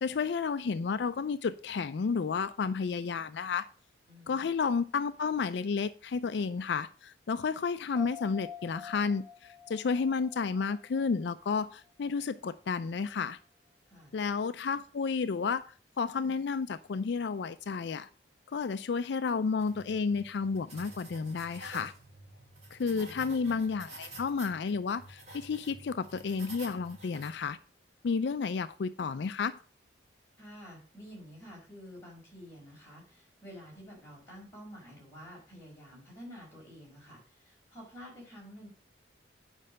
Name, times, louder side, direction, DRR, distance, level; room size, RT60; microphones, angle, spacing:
voice 1, 0.0-3.7 4.3-13.4 14.1-18.1 18.5-21.9 22.7-27.6 28.0-29.6, left 5 dB, 65° left, 13 dB, 0.4 m, -31 dB
voice 2, 4.1-4.4 13.9-14.2 22.8-23.6 30.4-38.7, equal, 15° left, -4 dB, 5.4 m, -50 dB
sound 1, 8.0-11.7 12.0-12.1, left 7 dB, 5° right, 3.8 m, -48 dB
sound 2, 19.6-27.4, right 2 dB, 35° right, 3.9 m, -49 dB
8.8 x 5.4 x 6.4 m, 0.40 s
head